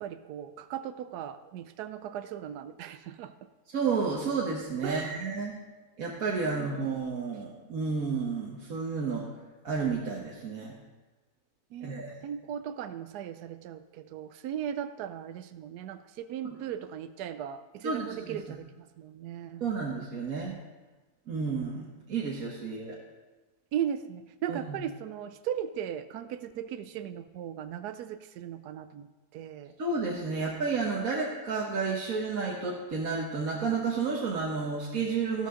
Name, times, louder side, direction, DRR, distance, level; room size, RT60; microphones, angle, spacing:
voice 1, 0.0-3.5 4.8-5.2 6.4-6.6 11.7-19.6 23.7-29.7, right 9 dB, 85° right, 11 dB, 1.1 m, -37 dB
voice 2, 3.7-5.6 6.0-9.3 9.6-10.8 11.8-12.1 17.8-18.4 19.6-20.6 21.3-23.0 24.5-24.6 29.8-35.5, right 4 dB, 65° right, -3 dB, 1.7 m, -31 dB
13.5 x 12.5 x 3.8 m, 1.2 s
omnidirectional pair, 1.7 m